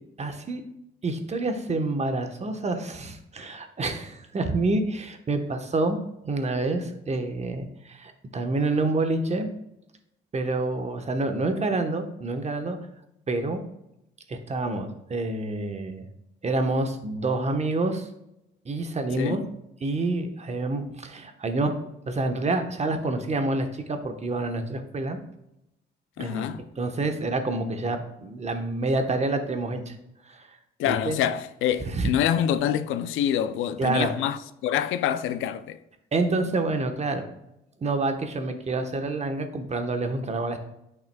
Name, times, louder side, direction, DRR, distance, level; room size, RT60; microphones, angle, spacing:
voice 1, 0.2-0.6 1.0-6.0 6.2-9.5 10.3-12.8 13.3-13.6 14.3-16.1 16.4-18.1 18.6-19.4 19.8-21.7 22.1-25.2 26.2-26.5 26.8-29.9 30.3-30.4 30.9-31.2 31.9-32.1 33.8-34.1 36.1-37.3 37.8-40.6, right 2 dB, 35° right, 1.1 m, -27 dB
voice 2, 26.2-26.6 30.8-35.8, left 10 dB, 90° left, 0.5 m, -26 dB
9.1 x 5.8 x 2.3 m
cardioid pair, 90°, 20 cm